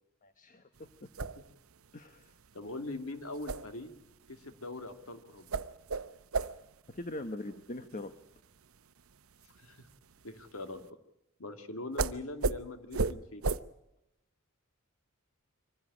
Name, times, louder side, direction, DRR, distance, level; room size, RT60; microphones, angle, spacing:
voice 1, 0.2-0.6 1.0-1.1 1.9-2.3 6.9-8.1, left 1 dB, 40° left, 9 dB, 1.1 m, -41 dB
sound 1, 0.8-10.9 11.9-12.1 12.4-12.5 12.9-13.1 13.4-13.6, right 4 dB, 75° right, 0.8 m, -37 dB
voice 2, 2.5-3.9 4.3-5.5 9.4-9.9 10.2-10.9 11.4-13.4, left 2 dB, 75° left, 7 dB, 2.3 m, -42 dB
24.0 x 15.5 x 9.8 m, 0.89 s
head